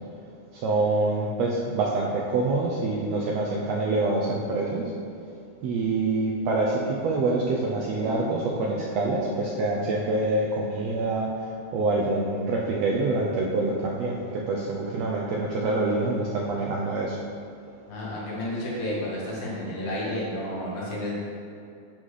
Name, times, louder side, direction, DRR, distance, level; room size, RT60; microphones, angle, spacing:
voice 1, 0.5-4.9 5.6-11.3 11.7-17.2, right 2 dB, 85° right, -3 dB, 1.5 m, -26 dB
voice 2, 17.9-21.1, left 1 dB, 75° left, -6 dB, 3.0 m, -31 dB
11.0 x 3.9 x 3.2 m, 2.5 s
omnidirectional pair, 3.6 m